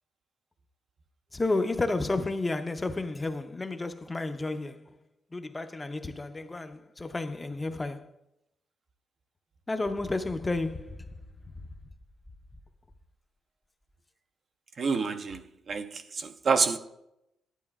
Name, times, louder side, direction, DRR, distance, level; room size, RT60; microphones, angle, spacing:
voice 1, 1.3-4.8 5.3-8.1 9.7-11.1, left 2 dB, 20° left, 0.5 m, -31 dB
voice 2, 14.8-16.8, right 5 dB, 45° right, 0.6 m, -28 dB
14.5 x 11.0 x 2.3 m
cardioid pair, 90°, 0 cm